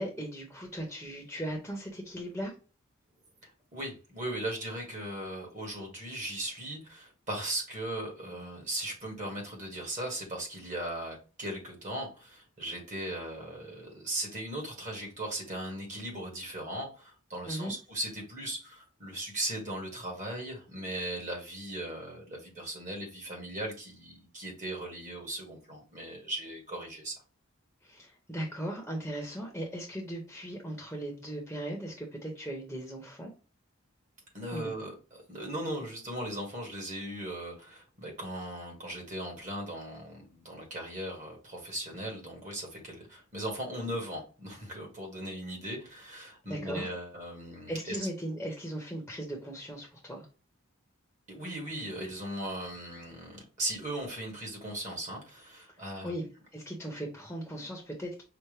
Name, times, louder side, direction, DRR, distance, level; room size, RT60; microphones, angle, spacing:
voice 1, 0.0-2.5 17.4-17.7 27.8-33.3 34.5-34.7 46.4-46.9 47.7-50.3 56.0-56.2 56.5-58.2, right 1 dB, 5° left, 0 dB, 0.9 m, -38 dB
voice 2, 3.4-27.2 34.3-48.0 51.3-56.1, right 1 dB, 35° right, 0 dB, 1.4 m, -38 dB
5.7 x 2.1 x 3.2 m, 0.35 s
head